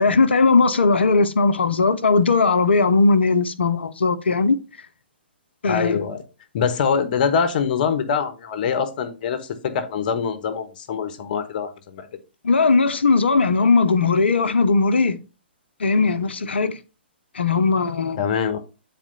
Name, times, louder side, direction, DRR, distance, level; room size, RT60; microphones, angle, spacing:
voice 1, 0.0-4.6 5.6-6.1 12.4-15.2 15.8-16.8 17.3-18.2, left 4 dB, 80° left, 0.9 m, -18 dB
voice 2, 5.7-6.2 6.5-12.1 18.2-18.6, left 6 dB, 50° left, 1.4 m, -24 dB
9.2 x 4.3 x 4.1 m
hypercardioid pair, 125°, 6 cm